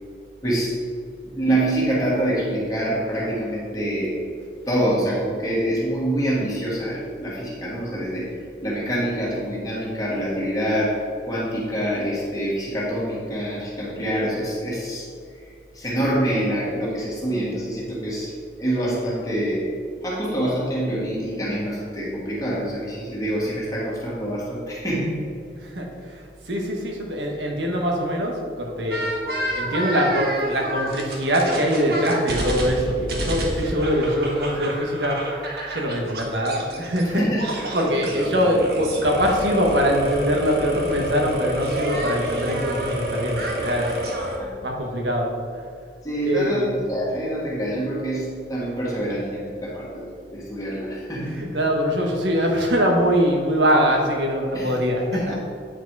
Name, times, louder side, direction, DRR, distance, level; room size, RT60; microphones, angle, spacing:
voice 1, 0.4-0.7 1.2-4.1 4.7-8.3 8.6-10.9 11.2-15.1 15.7-18.3 18.6-19.6 20.0-25.2 37.1-37.5 37.9-38.0 44.4-44.5 46.0-51.4 54.5-54.7 55.1-55.3, right 1 dB, 20° left, -6 dB, 1.8 m, -26 dB
voice 2, 25.6-29.0 29.6-35.2 35.7-37.3 37.5-44.0 44.2-44.4 44.6-45.3 46.2-46.7 51.2-55.3, equal, 85° right, 1 dB, 1.3 m, -23 dB
sound 1, 28.9-37.0 37.4-44.4, right 1 dB, 60° right, 1.2 m, -29 dB
8.9 x 4.9 x 4.7 m, 2.2 s
head